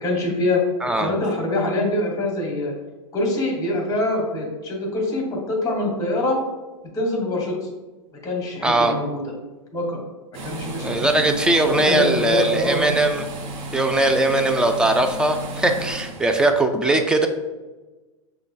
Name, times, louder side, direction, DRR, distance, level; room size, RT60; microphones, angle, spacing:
voice 1, 0.0-0.6 1.0-2.7 3.1-6.4 6.9-7.7 8.2-9.2 9.7-10.0 10.4-10.9 11.6-12.9, left 2 dB, 20° left, 0 dB, 1.4 m, -24 dB
voice 2, 0.8-1.1 8.6-8.9 10.8-13.3 13.7-17.3, right 2 dB, 5° right, 5 dB, 0.3 m, -20 dB
sound 1, 10.3-16.5, right 1 dB, 35° right, 0.7 m, -33 dB
6.2 x 2.2 x 3.6 m, 1.2 s
hypercardioid pair, 125°, 17 cm